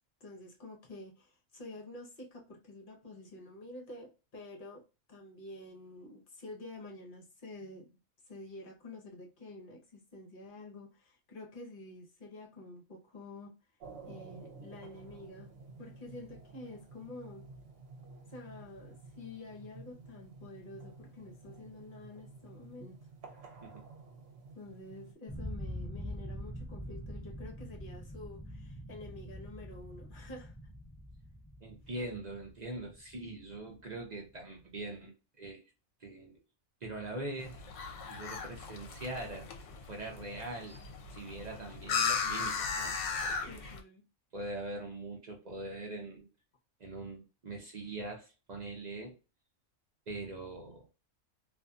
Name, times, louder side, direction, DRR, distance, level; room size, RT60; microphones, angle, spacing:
voice 1, 0.2-8.0 8.3-13.5 14.1-15.5 15.8-17.5 18.3-23.0 24.5-30.6 43.5-44.0, left 2 dB, 45° left, 0.9 m, -49 dB
sound 1, 13.8-25.1, right 3 dB, 70° right, 1.0 m, -52 dB
sound 2, 25.3-34.1, equal, 10° left, 0.4 m, -44 dB
voice 2, 31.6-35.6 36.0-36.4 36.8-37.6 38.1-40.8 41.1-43.0 43.2-43.6 44.3-46.3 46.8-49.1 50.1-50.9, right 2 dB, 45° right, 0.6 m, -42 dB
sound 3, 37.4-43.8, left 6 dB, 70° left, 0.9 m, -36 dB
2.6 x 2.5 x 2.2 m
omnidirectional pair, 1.4 m